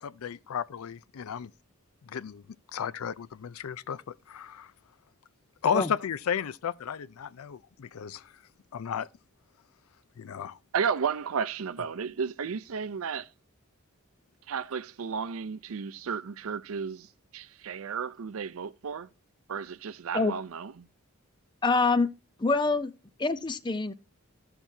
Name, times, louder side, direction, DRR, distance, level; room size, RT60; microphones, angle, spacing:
voice 1, 0.0-1.5 2.0-2.4 2.7-4.0 4.3-4.7 5.6-8.2 8.7-9.1 10.2-10.6, left 7 dB, 85° left, 0.4 m, -33 dB
voice 2, 10.7-13.3 14.5-17.1 17.3-19.1 19.5-20.7, right 6 dB, 80° right, 0.5 m, -33 dB
voice 3, 21.6-22.1 22.4-22.9 23.2-23.9, left 3 dB, 20° left, 0.5 m, -25 dB
15.0 x 5.9 x 2.7 m
head